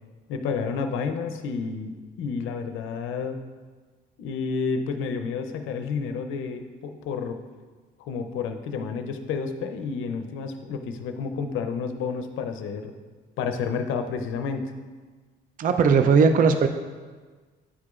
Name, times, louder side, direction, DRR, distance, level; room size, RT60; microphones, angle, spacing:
voice 1, 0.3-3.4 4.2-7.4 8.0-12.9 13.4-14.7, left 5 dB, 85° left, 7 dB, 0.5 m, -30 dB
voice 2, 15.6-16.7, right 5 dB, 45° right, 8 dB, 0.4 m, -18 dB
9.7 x 4.9 x 2.4 m, 1.4 s
cardioid pair, 90°, 20 cm